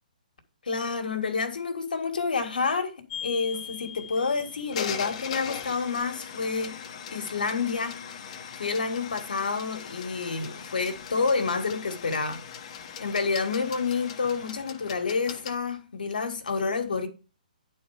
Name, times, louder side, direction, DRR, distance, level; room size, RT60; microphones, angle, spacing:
voice 1, 0.7-6.8 7.1-8.2 8.6-12.7 13.0-17.1, left 4 dB, 80° left, 1.9 m, -29 dB
sound 1, 3.1-15.6, left 8 dB, 45° left, 1.2 m, -40 dB
10.0 x 4.4 x 4.9 m
hypercardioid pair, 145°, 5 cm